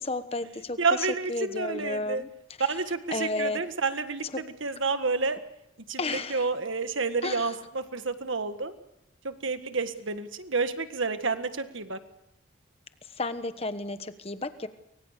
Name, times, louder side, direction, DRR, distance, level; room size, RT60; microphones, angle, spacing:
voice 1, 0.0-2.3 3.1-3.6 4.3-4.4 6.0-6.5 7.2-7.5 13.0-14.7, left 2 dB, 30° left, 10 dB, 1.2 m, -32 dB
voice 2, 0.8-2.2 2.6-5.4 5.9-8.7 9.2-12.0, right 4 dB, 70° right, 9 dB, 1.7 m, -29 dB
24.5 x 23.5 x 6.7 m, 0.83 s
head